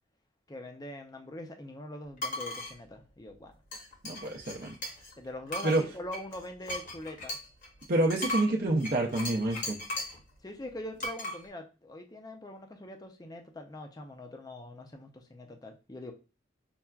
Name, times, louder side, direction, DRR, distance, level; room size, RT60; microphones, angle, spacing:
voice 1, 0.5-3.5 5.2-7.4 10.4-16.1, left 1 dB, 20° left, 5 dB, 0.5 m, -43 dB
sound 1, 2.2-2.7 3.7-5.1 5.5-10.2 11.0-11.4, left 1 dB, 45° left, 0.8 m, -37 dB
voice 2, 4.0-4.8 5.6-5.8 7.9-9.8, right 2 dB, 50° right, -1 dB, 0.5 m, -28 dB
5.6 x 2.4 x 2.3 m, 0.32 s
head